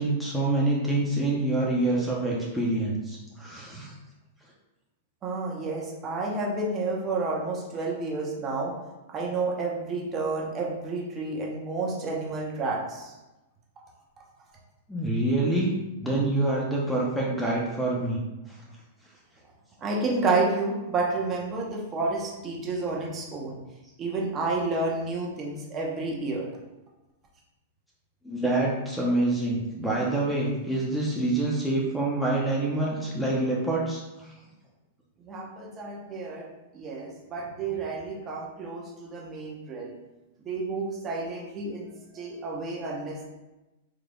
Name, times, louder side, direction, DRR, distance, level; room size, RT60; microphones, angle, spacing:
voice 1, 0.0-3.9 14.9-15.7 16.0-18.2 28.2-34.3, right 2 dB, ahead, -5 dB, 0.8 m, -26 dB
voice 2, 5.2-8.7 9.1-13.1 19.8-23.6 24.0-26.5 35.2-36.5 36.7-39.9 40.4-43.3, right 3 dB, 30° right, -3 dB, 0.9 m, -30 dB
3.8 x 3.2 x 2.3 m, 1.0 s
hypercardioid pair, 115°, 0 cm